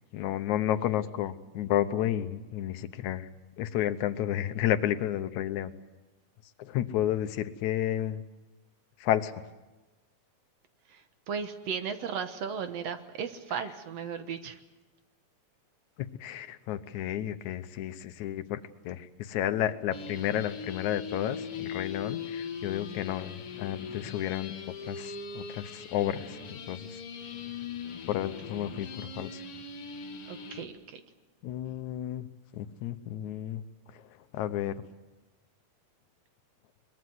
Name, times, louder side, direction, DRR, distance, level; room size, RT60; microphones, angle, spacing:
voice 1, 0.1-3.3 3.6-5.7 6.6-8.2 9.0-9.3 16.0-18.6 18.8-24.5 24.8-26.4 26.7-26.9 28.1-29.3 31.4-32.3 32.5-33.6 34.3-34.7, left 11 dB, 80° left, 12 dB, 2.3 m, -31 dB
voice 2, 11.3-14.6 30.3-31.0, right 6 dB, 65° right, 8 dB, 2.2 m, -36 dB
sound 1, 19.9-30.6, left 6 dB, 55° left, 2.5 m, -40 dB
23.0 x 21.0 x 7.9 m, 1.1 s
omnidirectional pair, 3.3 m